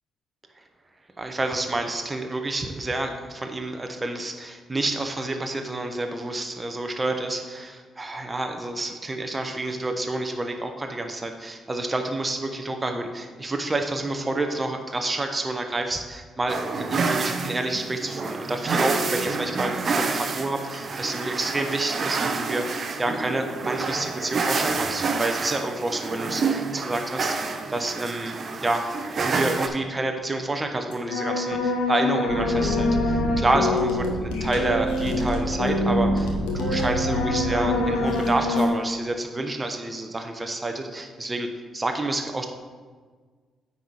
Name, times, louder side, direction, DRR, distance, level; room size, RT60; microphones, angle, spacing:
voice 1, 1.2-28.9 29.2-41.5 41.7-42.5, right 2 dB, 25° right, 5 dB, 0.9 m, -28 dB
sound 1, 16.5-29.7, right 4 dB, 50° right, 0.7 m, -28 dB
sound 2, 30.9-38.7, left 2 dB, 85° left, 1.1 m, -24 dB
9.0 x 4.2 x 4.7 m, 1.5 s
supercardioid pair, 55°, 0 cm